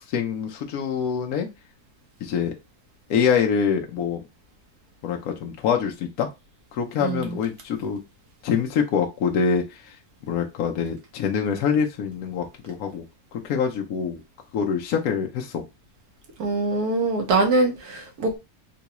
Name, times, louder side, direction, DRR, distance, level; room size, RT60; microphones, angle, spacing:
voice 1, 0.1-1.5 2.2-2.5 3.1-4.2 5.0-6.3 6.7-8.0 8.4-9.8 10.3-13.0 13.3-14.2 14.5-15.6, left 7 dB, 75° left, 1.1 m, -25 dB
voice 2, 7.0-7.4 16.4-18.4, right 3 dB, 80° right, 1.4 m, -23 dB
3.8 x 2.3 x 2.9 m
omnidirectional pair, 1.6 m